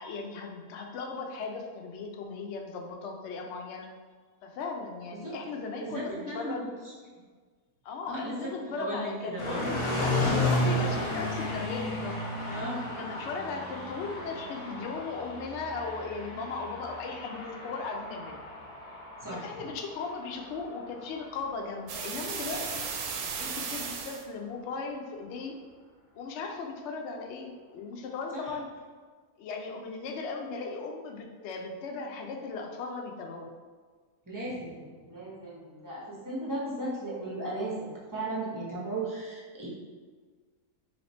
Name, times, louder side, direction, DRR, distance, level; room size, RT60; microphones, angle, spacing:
voice 1, 0.0-3.9 4.4-6.7 7.8-12.2 12.9-18.4 19.3-22.9 23.4-25.5 26.1-28.7 29.4-33.5, left 4 dB, 70° left, 2 dB, 0.6 m, -37 dB
voice 2, 5.8-6.5 6.8-6.9 8.1-8.4 8.7-9.6 12.5-12.8 19.2-19.4 28.3-28.5 34.3-39.7, right 2 dB, 25° right, -6 dB, 0.4 m, -36 dB
sound 1, 9.4-23.4, left 1 dB, 45° left, 0.9 m, -34 dB
sound 2, 21.9-24.2, right 5 dB, 75° right, 1.0 m, -35 dB
3.1 x 2.9 x 4.1 m, 1.5 s
omnidirectional pair, 1.6 m